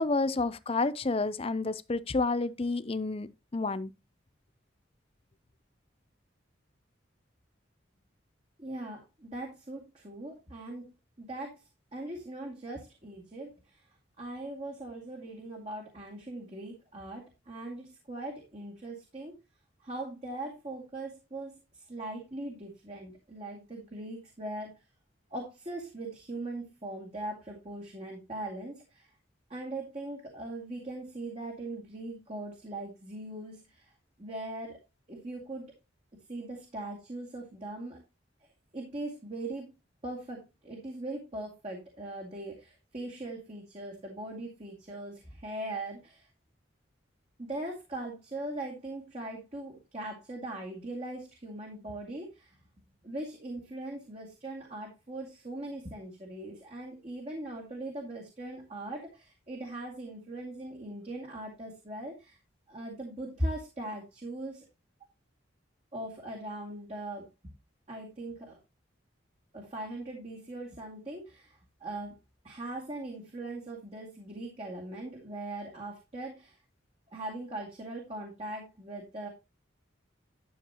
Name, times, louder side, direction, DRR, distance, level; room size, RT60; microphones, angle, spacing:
voice 1, 0.0-3.9, left 3 dB, 30° left, 0.5 m, -30 dB
voice 2, 8.6-10.9 11.2-11.6 11.9-13.9 14.2-19.3 19.8-24.8 25.3-29.1 29.5-33.9 34.2-34.8 35.1-35.7 36.3-38.0 38.7-39.7 40.0-46.3 47.4-52.6 53.0-62.4 62.7-64.7 65.9-67.5 67.9-68.6 69.5-72.1 72.4-76.6 77.1-79.3, right 1 dB, 35° right, 2.2 m, -40 dB
12.0 x 7.2 x 2.9 m
head